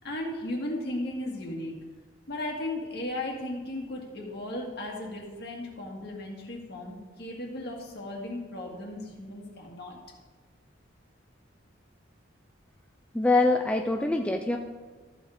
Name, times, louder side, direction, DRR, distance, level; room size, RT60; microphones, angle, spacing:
voice 1, 0.0-1.7 2.3-10.0, left 1 dB, 55° left, -1 dB, 2.1 m, -36 dB
voice 2, 13.1-14.6, left 2 dB, 5° left, 3 dB, 0.4 m, -24 dB
14.0 x 7.0 x 3.6 m, 1.3 s
head